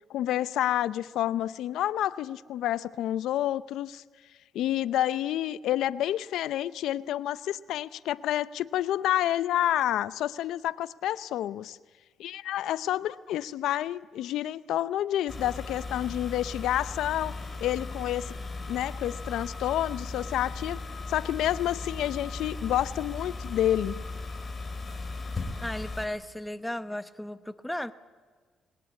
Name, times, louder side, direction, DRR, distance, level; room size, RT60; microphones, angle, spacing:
voice 1, 0.1-4.0 4.5-11.8 12.2-17.3 17.6-18.3 18.7-20.8 21.1-24.0, left 12 dB, 85° left, 17 dB, 0.6 m, -29 dB
sound 1, 15.3-26.1, left 3 dB, 30° left, 3.2 m, -37 dB
voice 2, 25.6-27.9, left 1 dB, 5° left, 12 dB, 0.9 m, -35 dB
20.5 x 19.5 x 8.4 m, 1.5 s
cardioid pair, 90°, 0 cm